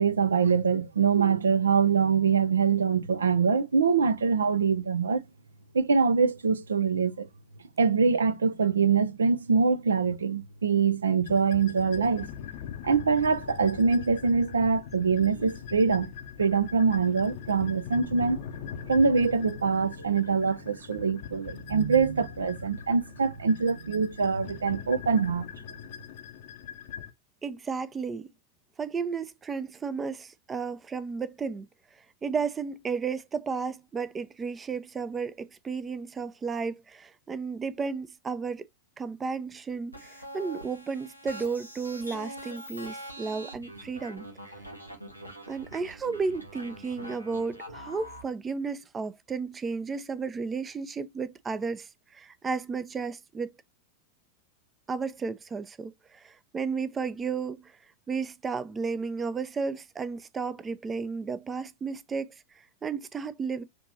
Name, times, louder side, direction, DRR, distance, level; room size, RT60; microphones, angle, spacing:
voice 1, 0.0-5.2 5.7-7.3 7.8-12.3 12.8-16.1 16.4-18.4 18.9-25.4, right 5 dB, 70° right, 0.5 m, -24 dB
sound 1, 11.3-27.1, left 8 dB, 50° left, 0.6 m, -42 dB
voice 2, 27.4-28.3 28.8-31.7 32.2-38.7 39.0-44.3 45.5-53.5 54.9-57.7 58.1-63.6, right 5 dB, 20° right, 0.4 m, -33 dB
sound 2, 39.9-48.2, equal, 90° right, 1.2 m, -44 dB
6.4 x 2.9 x 2.6 m
figure-of-eight pair, 90°, 0 cm